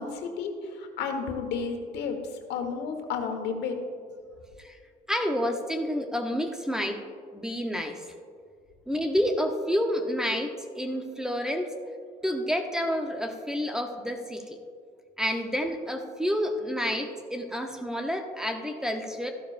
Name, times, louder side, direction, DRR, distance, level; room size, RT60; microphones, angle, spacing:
voice 1, 0.0-3.8, left 5 dB, 85° left, 4 dB, 1.4 m, -32 dB
voice 2, 5.1-7.0 7.3-8.0 8.9-11.7 12.2-14.6 15.2-19.3, equal, 5° right, 4 dB, 0.9 m, -29 dB
14.0 x 11.5 x 2.6 m, 2.2 s
cardioid pair, 110°, 17 cm